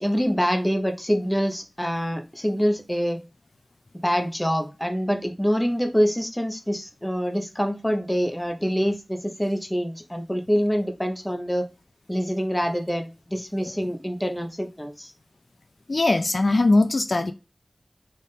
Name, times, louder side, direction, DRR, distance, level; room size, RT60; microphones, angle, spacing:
voice 1, 0.0-3.2 4.0-11.7 12.1-15.1, equal, 10° left, 4 dB, 0.8 m, -25 dB
voice 2, 15.9-17.3, left 2 dB, 65° left, 8 dB, 0.4 m, -21 dB
3.6 x 2.5 x 4.1 m, 0.29 s
wide cardioid pair, 55°, 0 cm